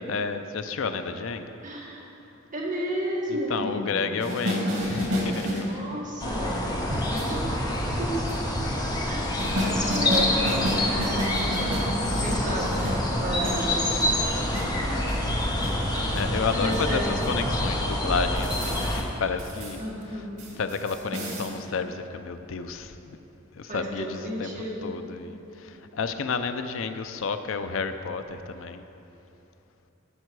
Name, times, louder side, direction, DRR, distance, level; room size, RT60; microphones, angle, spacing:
voice 1, 0.1-1.5 3.3-6.2 15.2-15.7 16.1-19.8 20.1-20.3 20.6-23.2 23.5-28.8, left 5 dB, 75° left, 9 dB, 0.5 m, -31 dB
voice 2, 1.6-2.0 2.5-4.4 5.6-7.6 8.0-8.3 9.1-9.5 9.9-11.9 12.2-14.1 16.5-17.1 19.8-20.4 23.7-24.9, equal, 40° right, -4 dB, 1.9 m, -33 dB
sound 1, 4.2-5.7 6.9-8.7 9.4-17.7 18.4-19.0 19.4-19.8 20.0-20.1 20.4-21.5, equal, 75° right, 2.2 m, -31 dB
sound 2, 6.2-19.0, left 1 dB, 20° left, 0.9 m, -27 dB
12.5 x 6.8 x 4.7 m, 3.0 s
head